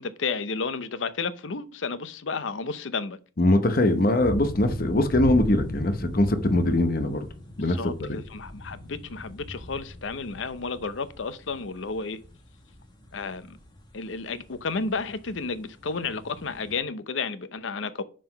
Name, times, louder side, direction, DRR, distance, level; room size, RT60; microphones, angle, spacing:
voice 1, 0.0-3.2 7.7-12.2 13.1-13.6 13.9-18.0, left 4 dB, 80° left, 0.7 m, -32 dB
voice 2, 3.4-7.2 7.6-7.8 8.1-8.2, left 1 dB, 50° left, 0.8 m, -22 dB
sound 1, 3.8-16.8, left 1 dB, 25° left, 1.3 m, -39 dB
5.8 x 5.0 x 5.7 m
head